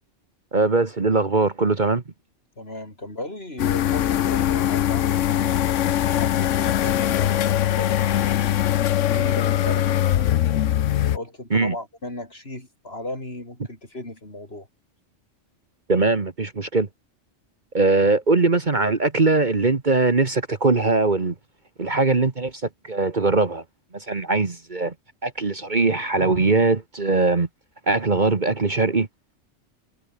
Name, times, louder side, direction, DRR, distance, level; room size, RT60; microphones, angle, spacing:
voice 1, 0.5-2.0 11.5-11.7 15.9-16.9 17.7-21.3 21.8-23.6 23.9-24.9 25.2-27.5 27.9-29.1, right 3 dB, 40° right, 1.6 m, -21 dB
voice 2, 2.6-5.6 6.2-8.5 9.0-10.3 11.1-14.7, left 1 dB, 55° left, 6.2 m, -36 dB
sound 1, 3.6-11.2, left 11 dB, 80° left, 1.1 m, -21 dB
omnidirectional pair, 1.3 m